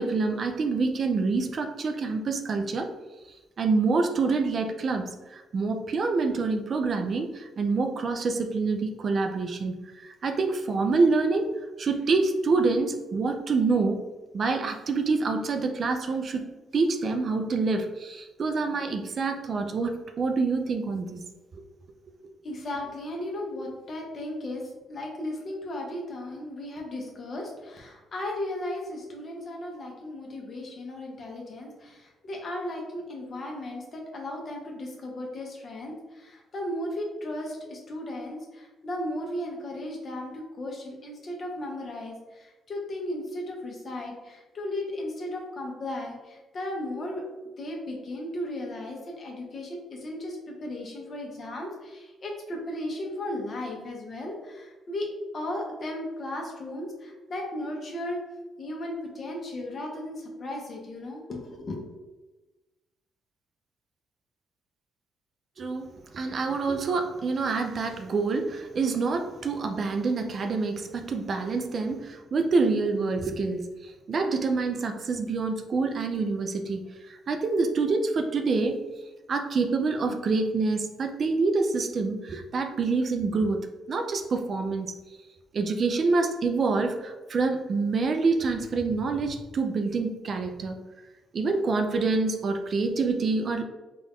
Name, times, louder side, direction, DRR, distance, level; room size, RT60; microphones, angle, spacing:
voice 1, 0.0-2.9 3.6-11.5 11.8-14.0 14.3-16.4 16.7-21.2 21.5-21.6 65.6-78.8 79.3-83.6 83.9-85.0 85.5-90.7 91.3-93.6, right 4 dB, 50° right, 5 dB, 0.4 m, -26 dB
voice 2, 22.4-47.2 47.6-55.1 55.3-58.2 58.6-61.7, left 1 dB, 45° left, 0 dB, 1.0 m, -35 dB
3.8 x 2.5 x 3.5 m, 1.1 s
cardioid pair, 90°, 0 cm